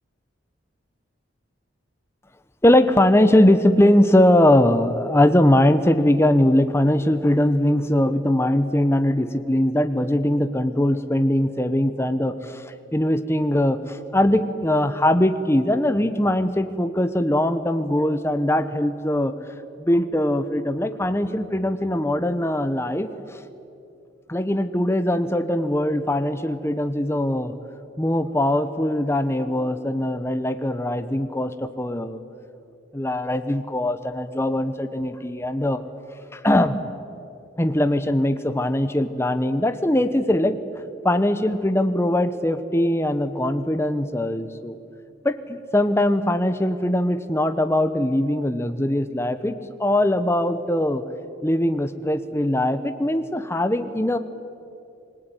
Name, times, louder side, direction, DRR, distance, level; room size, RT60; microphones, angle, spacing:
voice 1, 2.6-19.3 19.8-23.1 24.3-27.5 28.0-32.2 32.9-35.8 36.3-36.8 37.6-40.6 41.0-44.8 45.2-49.5 49.8-51.0 51.4-54.2, left 1 dB, 15° left, 10 dB, 0.9 m, -21 dB
27.0 x 20.5 x 9.1 m, 2.7 s
head